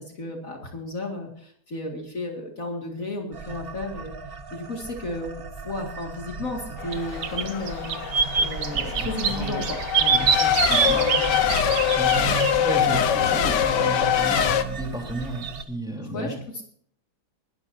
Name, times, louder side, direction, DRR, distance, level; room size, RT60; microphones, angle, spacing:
voice 1, 0.1-7.9 8.4-9.8 16.0-16.6, left 2 dB, 50° left, 1 dB, 2.5 m, -33 dB
sound 1, 3.3-15.6, right 5 dB, 40° right, 1.1 m, -37 dB
Race car auto racing / Accelerating revving vroom / Mechanisms, 6.8-14.6, left 9 dB, 90° left, 1.6 m, -24 dB
sound 2, 6.9-7.0 7.2-12.6 15.4-15.6, right 7 dB, 75° right, 1.7 m, -25 dB
voice 2, 8.7-9.7 10.0-11.2 11.9-16.4, right 1 dB, ahead, 0 dB, 3.8 m, -33 dB
21.5 x 12.5 x 2.7 m, 0.62 s
omnidirectional pair, 1.8 m